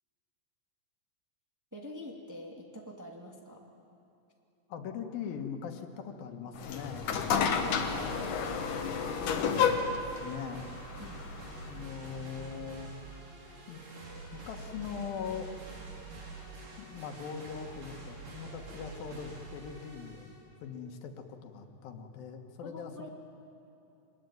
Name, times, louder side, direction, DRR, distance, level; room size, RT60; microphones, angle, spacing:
voice 1, 1.7-3.6 11.0-11.3 22.6-23.1, equal, 5° right, -1 dB, 2.0 m, -46 dB
voice 2, 4.7-7.1 7.6-8.6 9.1-10.7 11.6-12.9 13.7-13.8 14.3-15.5 16.8-23.1, left 7 dB, 90° left, 5 dB, 3.3 m, -41 dB
sound 1, 6.6-11.8, left 6 dB, 65° left, 2.8 m, -31 dB
sound 2, 6.7-20.4, right 3 dB, 70° right, 5.8 m, -46 dB
24.0 x 21.5 x 9.3 m, 2.8 s
omnidirectional pair, 4.0 m